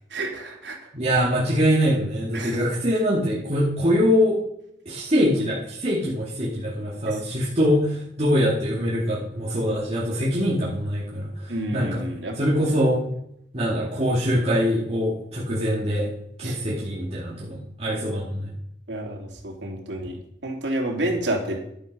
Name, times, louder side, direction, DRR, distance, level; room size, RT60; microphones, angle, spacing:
voice 1, 0.1-0.9 2.3-2.6 11.5-12.4 16.4-16.6 18.9-21.6, right 1 dB, 85° right, 1 dB, 2.9 m, -29 dB
voice 2, 0.9-4.4 4.9-12.0 12.4-13.0 13.5-16.1 16.4-18.5, equal, 35° right, -6 dB, 2.2 m, -23 dB
11.5 x 9.8 x 5.4 m, 0.75 s
head